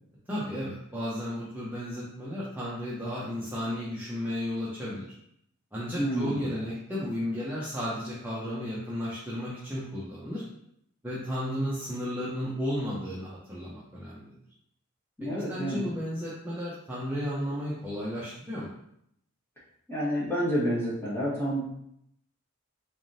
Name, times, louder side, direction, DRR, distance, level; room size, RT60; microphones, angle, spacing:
voice 1, 0.3-5.1 5.7-10.4 11.0-14.3 15.2-18.7, equal, 10° right, -9 dB, 0.6 m, -33 dB
voice 2, 5.9-6.4 15.2-15.8 19.9-21.6, equal, 10° left, -9 dB, 1.4 m, -29 dB
3.6 x 3.4 x 2.7 m, 0.74 s
head